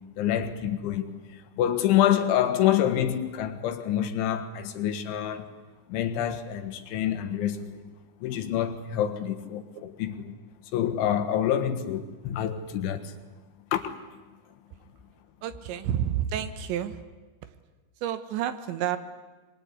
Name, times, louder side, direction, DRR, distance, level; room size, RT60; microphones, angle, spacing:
voice 1, 0.2-5.5 5.9-7.9 8.2-10.3 10.7-13.1 13.7-14.0, left 10 dB, 85° left, 4.0 m, -27 dB
voice 2, 15.4-17.0 18.0-19.0, right 10 dB, 80° right, 3.5 m, -30 dB
24.0 x 24.0 x 9.9 m
omnidirectional pair, 5.3 m